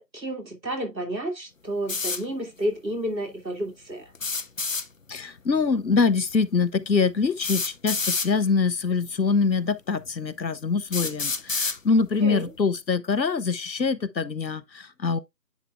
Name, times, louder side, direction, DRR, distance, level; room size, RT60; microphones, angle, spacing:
voice 1, 0.0-4.0 12.2-12.5, right 1 dB, 85° right, 2.4 m, -31 dB
sound 1, 1.9-2.2 4.1-4.9 6.3-6.4 7.4-8.3 9.3-9.4 10.1-10.2 10.9-11.8, left 4 dB, 55° left, 0.5 m, -28 dB
voice 2, 5.1-15.2, left 4 dB, 85° left, 0.9 m, -24 dB
9.8 x 3.3 x 3.5 m
figure-of-eight pair, 160°, 50 cm